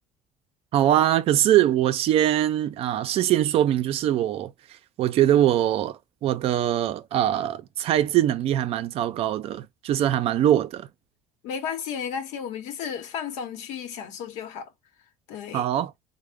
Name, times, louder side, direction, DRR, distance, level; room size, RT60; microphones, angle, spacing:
voice 1, 0.7-4.5 5.0-10.9 15.5-15.9, right 12 dB, 55° right, 0.4 m, -22 dB
voice 2, 11.4-14.7 15.3-15.7, left 7 dB, 75° left, 0.9 m, -33 dB
3.6 x 2.1 x 3.4 m
supercardioid pair, 95°, 12 cm